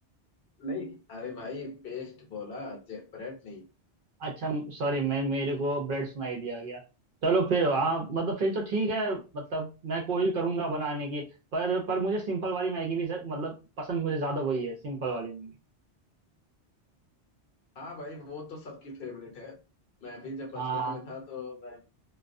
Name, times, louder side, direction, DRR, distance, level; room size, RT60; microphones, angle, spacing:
voice 1, 0.6-3.6 17.8-19.6 20.0-21.8, left 3 dB, 55° left, 0.9 m, -40 dB
voice 2, 4.2-6.8 7.2-11.2 11.5-15.5 20.6-21.0, right 3 dB, 60° right, 0.6 m, -29 dB
2.2 x 2.2 x 2.4 m
omnidirectional pair, 1.2 m